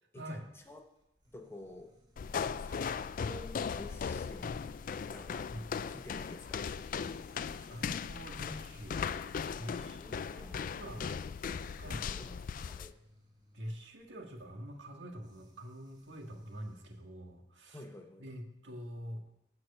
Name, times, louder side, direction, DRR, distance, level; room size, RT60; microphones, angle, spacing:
voice 1, 0.1-0.9 1.3-1.9 2.6-4.7 5.0-5.5 5.9-6.6 9.9-11.1 11.8-12.9 17.7-18.3, left 1 dB, 15° left, 4 dB, 0.9 m, -51 dB
sound 1, 0.6-17.0, equal, 25° right, 2.5 m, -66 dB
sound 2, 2.2-12.9, left 6 dB, 50° left, 0.3 m, -38 dB
voice 2, 7.6-9.0 9.5-10.0 10.3-11.1 11.8-12.0 13.5-17.8 18.2-19.2, equal, 80° right, 2 dB, 1.7 m, -45 dB
12.0 x 4.8 x 8.3 m, 0.85 s
head